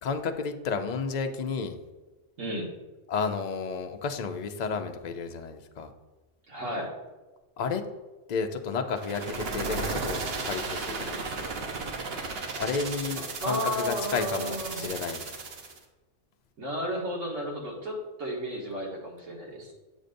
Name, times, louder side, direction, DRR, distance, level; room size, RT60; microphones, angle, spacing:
voice 1, 0.0-1.8 3.1-5.9 7.6-7.8 8.3-11.5 12.5-15.3, left 5 dB, 50° left, 6 dB, 0.5 m, -32 dB
voice 2, 2.4-2.7 6.5-6.9 13.4-14.9 16.6-19.7, equal, 80° right, -2 dB, 1.8 m, -33 dB
sound 1, 9.0-15.8, right 4 dB, 55° right, 1.0 m, -34 dB
8.1 x 6.5 x 2.6 m, 1.2 s
omnidirectional pair, 1.3 m